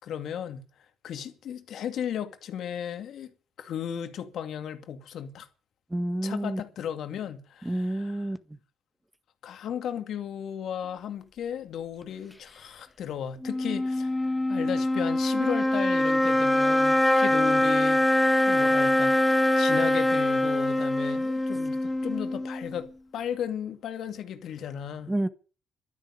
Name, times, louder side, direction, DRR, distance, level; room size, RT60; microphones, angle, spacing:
voice 1, 0.0-0.7 1.0-3.3 3.6-5.5 6.2-8.0 9.4-25.1, left 9 dB, 70° left, 2.3 m, -35 dB
voice 2, 5.9-6.6 7.6-8.6 25.1-25.3, right 1 dB, 10° right, 1.6 m, -29 dB
sound 1, 13.4-22.8, left 1 dB, 10° left, 1.7 m, -24 dB
12.5 x 9.9 x 9.8 m
cardioid pair, 90°, 0 cm